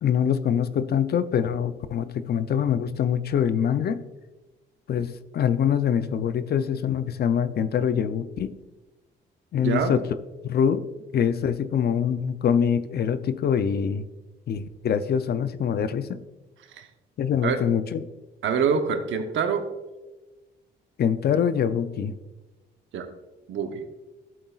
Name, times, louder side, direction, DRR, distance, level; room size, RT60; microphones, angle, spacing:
voice 1, 0.0-4.0 4.9-8.5 9.5-10.0 10.4-10.8 11.1-14.0 14.5-16.2 17.2-18.0 21.0-22.2, left 8 dB, 55° left, 13 dB, 0.5 m, -24 dB
voice 2, 9.6-9.9 16.7-16.9 17.4-17.6 18.4-19.6 22.9-23.1 23.5-23.8, right 6 dB, 75° right, 7 dB, 1.0 m, -25 dB
11.5 x 7.9 x 2.4 m, 1.1 s
cardioid pair, 90°, 20 cm